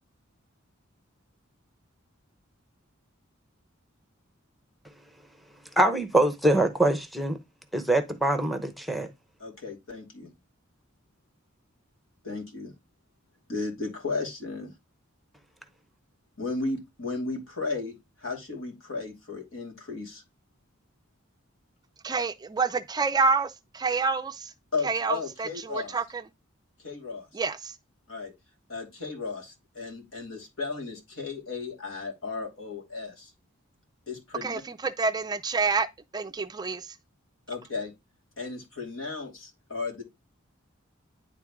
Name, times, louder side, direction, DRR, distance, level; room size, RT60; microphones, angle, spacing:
voice 1, 5.8-7.4 7.7-9.1, right 1 dB, ahead, 0.8 m, -24 dB
voice 2, 9.4-10.3 12.2-12.7 13.5-14.7 16.4-17.9 18.2-20.2 24.7-25.9 26.8-27.3 28.1-28.3 28.7-33.3 34.1-34.6 37.5-37.9 38.4-40.0, left 3 dB, 75° left, 2.7 m, -34 dB
voice 3, 22.0-24.5 24.8-26.2 27.3-27.8 34.4-35.9 36.1-37.0, right 4 dB, 20° right, 0.4 m, -28 dB
10.5 x 3.8 x 3.6 m
head